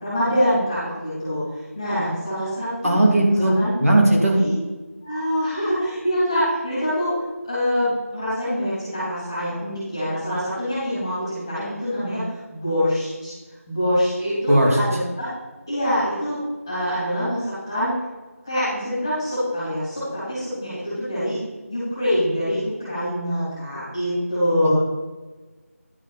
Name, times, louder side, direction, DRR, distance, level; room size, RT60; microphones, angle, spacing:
voice 1, 0.0-3.0 3.4-3.7 4.3-4.5 5.0-7.1 7.4-13.3 13.7-15.3 15.7-16.4 16.7-17.9 18.4-21.4 21.7-24.8, equal, 15° left, -11 dB, 3.3 m, -25 dB
voice 2, 2.8-3.5 3.8-4.4 14.5-14.8, right 1 dB, 70° right, -1 dB, 3.2 m, -17 dB
11.0 x 7.3 x 4.3 m, 1.2 s
figure-of-eight pair, 170°, 8 cm